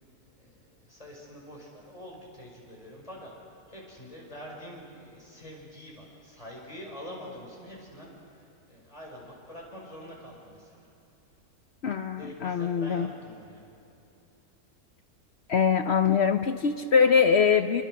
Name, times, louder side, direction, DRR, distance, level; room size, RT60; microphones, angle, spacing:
voice 1, 0.4-3.3 3.7-10.9 12.2-13.7, equal, 20° left, -2 dB, 5.3 m, -45 dB
voice 2, 11.8-13.1 15.5-17.8, left 6 dB, 55° left, 8 dB, 0.8 m, -23 dB
26.5 x 24.5 x 6.4 m, 2.7 s
omnidirectional pair, 1.6 m